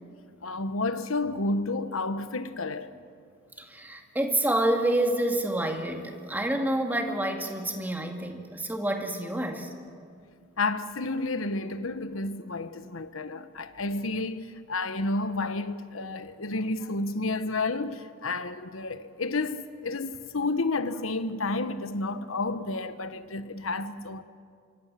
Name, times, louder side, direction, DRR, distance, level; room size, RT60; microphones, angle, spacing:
voice 1, 0.4-2.9 10.6-24.2, left 2 dB, 80° left, 1.2 m, -31 dB
voice 2, 3.6-9.7, right 1 dB, 10° right, 2.2 m, -28 dB
26.0 x 24.5 x 7.6 m
head